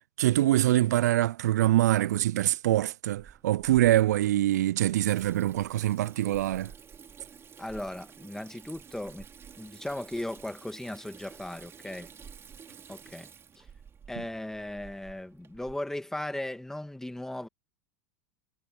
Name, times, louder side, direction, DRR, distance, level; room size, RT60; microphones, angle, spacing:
voice 1, 0.2-6.7, right 14 dB, 75° right, 0.4 m, -24 dB
Water tap faucet / Sink (filling or washing), 3.1-15.8, right 7 dB, 30° right, 2.6 m, -51 dB
voice 2, 7.6-9.3 9.6-12.1 12.9-13.3 13.6-13.7 14.1-17.5, left 1 dB, 5° left, 2.2 m, -37 dB
hypercardioid pair, 90°, 9 cm